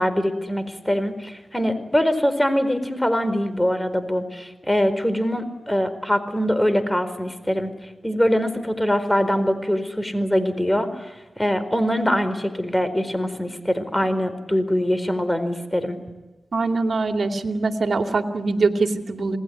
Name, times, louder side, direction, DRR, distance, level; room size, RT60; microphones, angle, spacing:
voice 1, 0.0-7.7 8.0-16.0, equal, 10° left, 11 dB, 4.5 m, -23 dB
voice 2, 16.5-19.4, right 3 dB, 70° right, 5 dB, 2.6 m, -23 dB
28.0 x 19.5 x 9.6 m, 1.1 s
cardioid pair, 50°, 0 cm